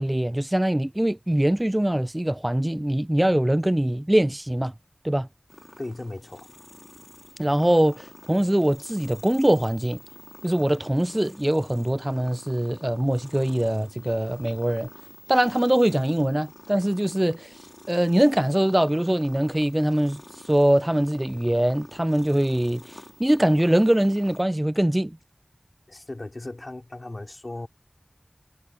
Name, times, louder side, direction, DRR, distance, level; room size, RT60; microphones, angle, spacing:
voice 1, 0.0-4.7 5.0-5.3 7.4-10.0 10.4-14.9 15.3-17.5 17.9-20.2 20.5-25.2, right 1 dB, 25° right, 0.4 m, -22 dB
sound 1, 5.5-24.4, left 1 dB, 45° left, 2.6 m, -48 dB
voice 2, 5.8-6.5 25.9-27.7, left 2 dB, 65° left, 2.5 m, -36 dB
wide cardioid pair, 40°, 0 cm